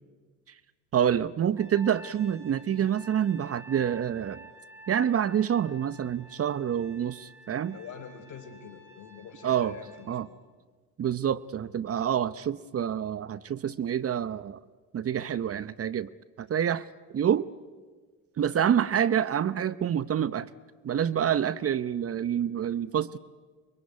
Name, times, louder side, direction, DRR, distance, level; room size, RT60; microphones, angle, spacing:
voice 1, 0.9-4.4 4.9-7.8 9.4-9.7 10.1-10.3 11.0-14.6 14.9-16.1 16.4-16.8 17.1-17.5 18.4-20.5 20.8-23.2, right 9 dB, 40° right, 16 dB, 0.8 m, -27 dB
Trumpet, 1.5-10.1, right 2 dB, 5° right, 7.5 m, -51 dB
voice 2, 7.7-10.3 18.5-18.8, left 7 dB, 55° left, 7 dB, 4.4 m, -45 dB
24.0 x 23.5 x 9.7 m, 1.4 s
supercardioid pair, 75°, 37 cm